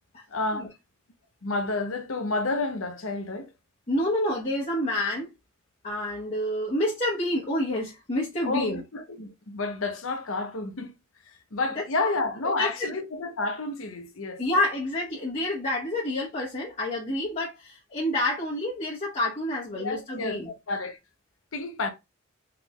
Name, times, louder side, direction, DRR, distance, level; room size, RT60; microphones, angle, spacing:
voice 1, 0.3-0.7 1.4-3.5 8.4-10.9 11.2-14.4 19.8-20.4 20.7-21.0 21.5-21.9, left 3 dB, 85° left, 0.8 m, -30 dB
voice 2, 3.9-5.3 5.8-8.8 11.8-11.9 12.6-12.9 14.4-20.5, left 1 dB, 40° left, 1.2 m, -28 dB
4.5 x 3.7 x 2.3 m
head